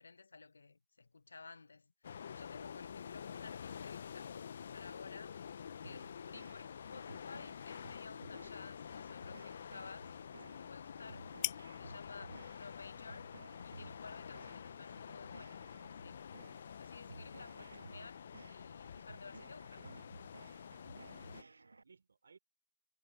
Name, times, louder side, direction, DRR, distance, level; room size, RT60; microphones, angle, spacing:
voice 1, 0.0-5.4 5.8-11.3 11.8-13.3 13.6-15.7 16.0-16.3 16.8-19.8, left 4 dB, 50° left, 1.2 m, -55 dB
sound 1, 2.0-21.4, left 7 dB, 30° left, 0.7 m, -49 dB
sound 2, 5.8-21.8, right 3 dB, 60° right, 0.6 m, -57 dB
sound 3, 7.1-14.8, left 23 dB, 15° left, 3.1 m, -50 dB
voice 2, 12.2-12.5 14.4-15.1 17.3-17.7 19.8-20.1 20.7-22.4, right 5 dB, 45° right, 3.7 m, -64 dB
figure-of-eight pair, 170°, 0 cm